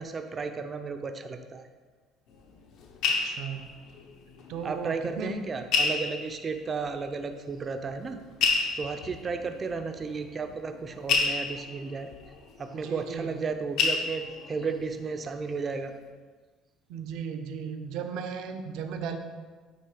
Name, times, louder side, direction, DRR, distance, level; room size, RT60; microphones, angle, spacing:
voice 1, 0.0-1.7 4.6-8.2 8.8-12.1 12.6-15.9, right 4 dB, 25° right, 7 dB, 0.4 m, -33 dB
sound 1, 2.3-4.7 4.9-5.0 5.7-6.7 7.5-7.6 8.3-13.5 13.8-14.7 15.2-15.5 15.7-15.9, left 4 dB, 60° left, 0.8 m, -30 dB
voice 2, 3.1-3.7 4.5-5.4 12.7-13.4 16.9-19.2, right 6 dB, 70° right, 6 dB, 0.6 m, -36 dB
8.7 x 3.1 x 4.8 m, 1.4 s
cardioid pair, 150°, 0 cm